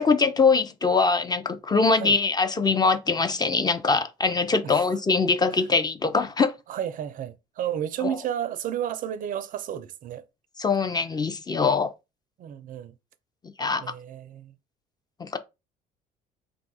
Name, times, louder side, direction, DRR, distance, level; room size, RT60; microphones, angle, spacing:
voice 1, 0.0-6.5 8.0-8.2 10.6-11.9 13.6-13.8 15.2-15.4, left 4 dB, 25° left, 0.5 m, -23 dB
voice 2, 6.7-10.2 12.4-12.9 13.8-14.5, right 10 dB, 55° right, 0.4 m, -32 dB
2.6 x 2.3 x 4.0 m
supercardioid pair, 90°, 17 cm